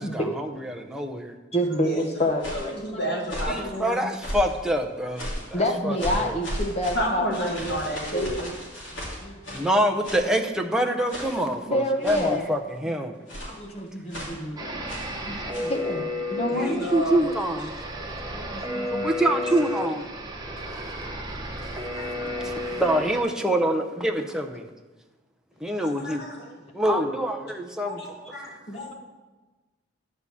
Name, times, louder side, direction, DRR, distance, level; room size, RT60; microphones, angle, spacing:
voice 1, 0.0-1.3 3.5-5.3 5.8-6.4 9.5-13.1 16.6-17.7 18.3-18.4 18.9-20.1 20.7-21.0 21.6-21.7 22.0-22.1 22.4-24.7 25.6-26.3 26.7-28.0, right 1 dB, 5° right, 3 dB, 0.6 m, -26 dB
voice 2, 1.5-3.1 3.6-3.7 5.5-8.6 8.9-9.7 11.6-12.5 13.4-16.8 18.1-19.1 22.4-22.5 26.9-27.0 28.7-28.9, equal, 35° left, 3 dB, 0.9 m, -29 dB
sound 1, 2.1-2.7 3.2-3.6 4.2-4.6 5.1-5.5 6.0-9.7 10.0-10.3 11.1-11.5 12.0-12.4 13.3-13.6 14.1-14.4 14.9-15.2 15.5-15.8, equal, 80° left, 2.4 m, -35 dB
voice 3, 2.5-4.0 6.9-8.4 16.4-17.2 25.8-26.5 27.8-28.9, equal, 55° left, -1 dB, 2.0 m, -31 dB
sound 2, 14.6-23.2, left 1 dB, 20° right, 1.0 m, -32 dB
9.7 x 4.8 x 7.0 m, 1.2 s
head